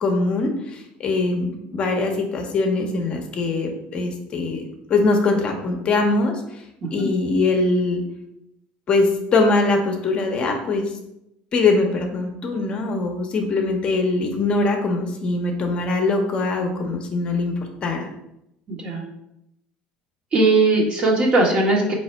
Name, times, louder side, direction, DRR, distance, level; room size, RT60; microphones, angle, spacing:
voice 1, 0.0-4.6 4.9-6.4 6.9-8.0 8.9-11.0 11.5-18.1, left 3 dB, 35° left, 3 dB, 0.7 m, -22 dB
voice 2, 18.7-19.0 20.3-21.9, right 2 dB, 35° right, -1 dB, 1.1 m, -19 dB
3.9 x 2.8 x 4.4 m, 0.84 s
cardioid pair, 130°, 3 cm